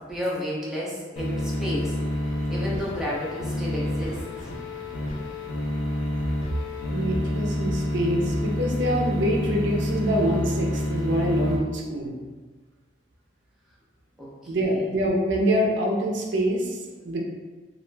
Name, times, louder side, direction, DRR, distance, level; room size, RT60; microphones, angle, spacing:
voice 1, 0.0-2.0 2.5-4.2 14.2-14.9, equal, ahead, -7 dB, 0.5 m, -32 dB
sound 1, 1.2-11.6, left 1 dB, 85° left, 0.5 m, -28 dB
voice 2, 6.9-12.1 14.5-17.3, equal, 70° right, -1 dB, 0.4 m, -25 dB
2.3 x 2.1 x 3.2 m, 1.3 s
head